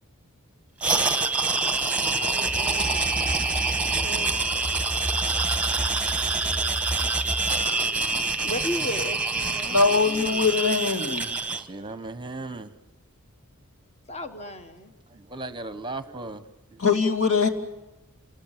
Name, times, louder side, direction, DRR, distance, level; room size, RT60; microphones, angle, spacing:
sound 1, 0.8-11.6, right 3 dB, 5° right, 1.4 m, -26 dB
voice 1, 2.2-3.2 4.0-4.3 7.0-7.3 8.4-10.4 14.1-14.9, left 1 dB, 30° left, 1.4 m, -36 dB
sound 2, 2.4-7.6, equal, 10° left, 3.1 m, -33 dB
voice 2, 9.7-11.3 16.8-17.5, left 4 dB, 65° left, 2.8 m, -22 dB
voice 3, 11.5-12.7 15.1-16.8, right 2 dB, 20° right, 0.9 m, -37 dB
28.5 x 21.0 x 7.3 m
head